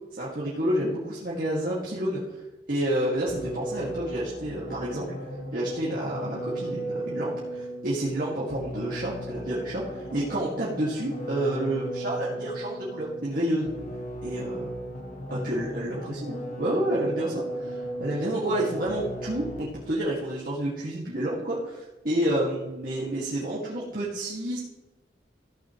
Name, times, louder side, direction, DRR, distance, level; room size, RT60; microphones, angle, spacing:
voice 1, 0.1-2.4 2.7-5.1 5.5-13.7 14.2-14.7 15.3-24.6, right 1 dB, 50° right, -7 dB, 2.2 m, -29 dB
sound 1, 3.3-19.9, right 1 dB, 40° left, 1.7 m, -36 dB
15.0 x 8.5 x 3.2 m, 1.1 s
head